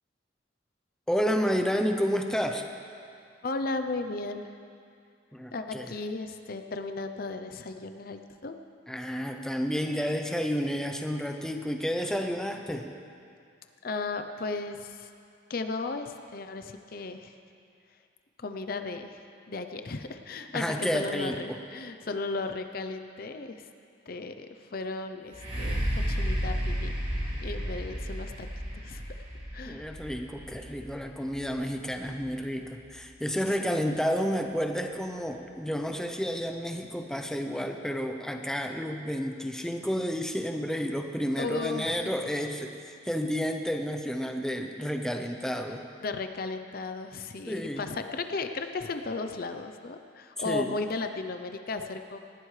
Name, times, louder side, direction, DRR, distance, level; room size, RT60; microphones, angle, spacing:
voice 1, 1.1-2.6 5.3-5.9 8.9-12.9 20.5-21.6 29.7-45.8 47.5-47.8 50.4-50.7, equal, 5° left, 4 dB, 0.6 m, -30 dB
voice 2, 3.4-4.4 5.5-8.5 13.8-15.1 15.5-17.3 18.4-19.2 19.5-23.7 24.1-26.9 27.4-28.5 28.7-29.0 29.5-29.9 33.5-33.9 41.4-42.1 46.0-52.2, left 3 dB, 50° left, 7 dB, 0.6 m, -35 dB
sound 1, 25.3-33.0 33.7-33.8, equal, 35° right, 3.0 m, -33 dB
19.5 x 14.5 x 3.3 m, 2.4 s
head